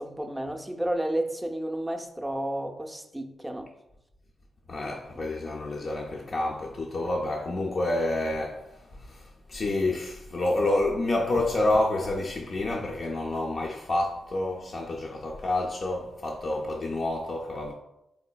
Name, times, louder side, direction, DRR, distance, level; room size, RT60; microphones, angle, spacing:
voice 1, 0.0-3.7, right 1 dB, 10° right, 0.5 m, -31 dB
voice 2, 4.7-17.7, left 2 dB, 55° left, 0.4 m, -28 dB
3.7 x 3.2 x 2.2 m
supercardioid pair, 40°, 0 cm